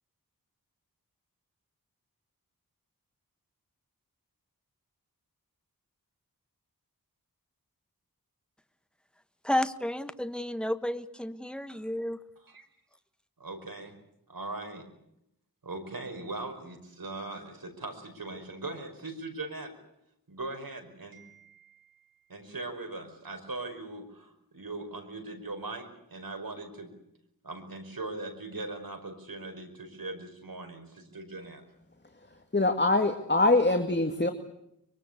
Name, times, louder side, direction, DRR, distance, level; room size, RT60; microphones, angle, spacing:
voice 1, 9.4-12.2, left 1 dB, 5° left, 10 dB, 1.5 m, -31 dB
voice 2, 13.4-13.9 14.3-14.9 15.6-19.7 20.3-21.9 22.3-26.9 27.4-31.6, right 2 dB, 70° right, 5 dB, 5.5 m, -40 dB
voice 3, 32.5-34.3, left 2 dB, 30° left, 6 dB, 2.3 m, -23 dB
24.5 x 23.5 x 8.3 m, 0.78 s
wide cardioid pair, 65°, 36 cm